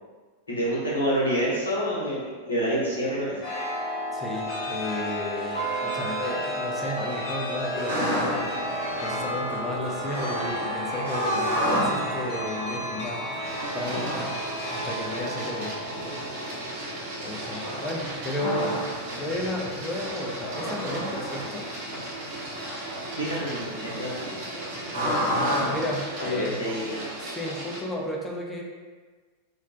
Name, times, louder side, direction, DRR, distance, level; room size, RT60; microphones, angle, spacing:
voice 1, 0.5-3.3 15.9-16.1 23.1-24.1 26.2-27.0, equal, 80° left, -7 dB, 0.8 m, -27 dB
Chime, 3.4-17.6, equal, 45° left, 0.7 m, -32 dB
voice 2, 4.1-8.5 9.0-13.2 13.7-14.1 14.7-15.7 17.2-18.9 19.2-21.7 25.0-25.3 25.7-26.6 27.2-28.6, left 1 dB, 15° left, -2 dB, 0.4 m, -33 dB
sound 1, 7.7-26.0, equal, 85° right, 0.9 m, -32 dB
Printer, 13.4-27.8, right 1 dB, 50° right, 0.7 m, -36 dB
2.3 x 2.1 x 2.5 m, 1.4 s
figure-of-eight pair, 90°, 0 cm